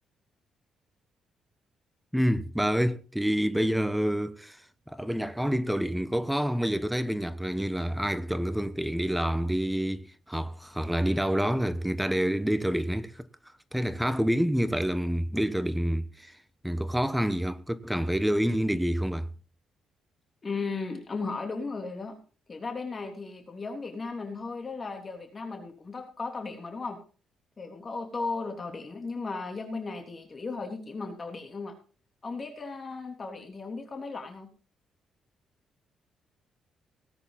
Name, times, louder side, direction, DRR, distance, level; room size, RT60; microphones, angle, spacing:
voice 1, 2.1-4.6 4.9-16.4 16.6-19.3, equal, 5° right, 1.1 m, -28 dB
voice 2, 20.4-22.2 22.5-27.0 27.6-31.7 32.2-34.5, left 4 dB, 35° left, 3.3 m, -36 dB
18.5 x 9.7 x 4.1 m
cardioid pair, 90°, 0 cm